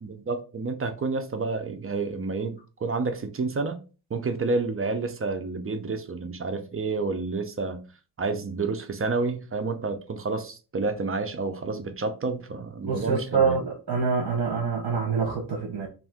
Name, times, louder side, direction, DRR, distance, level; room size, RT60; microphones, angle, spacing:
voice 1, 0.0-3.8 4.1-7.8 8.2-13.6, right 3 dB, 35° right, 0.5 m, -29 dB
voice 2, 12.8-15.9, right 5 dB, 65° right, 0.9 m, -26 dB
2.7 x 2.6 x 3.4 m
wide cardioid pair, 105°, 39 cm